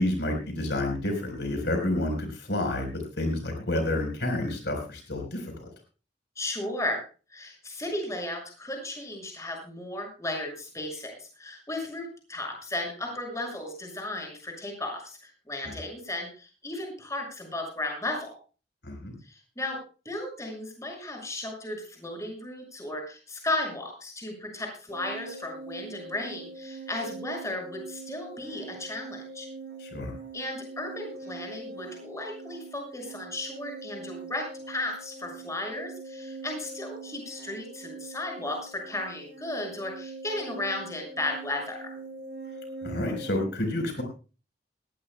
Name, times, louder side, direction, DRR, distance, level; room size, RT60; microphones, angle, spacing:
voice 1, 0.0-5.7 15.6-15.8 18.8-19.1 29.8-30.1 42.8-44.0, left 1 dB, 70° left, 3 dB, 4.2 m, -29 dB
voice 2, 6.4-7.0 7.3-18.3 19.3-19.8 20.0-29.5 30.3-41.8, left 1 dB, 15° left, 1 dB, 6.3 m, -35 dB
sound 1, 24.9-43.5, right 3 dB, 65° right, 1.8 m, -43 dB
21.0 x 16.0 x 2.2 m, 0.35 s
head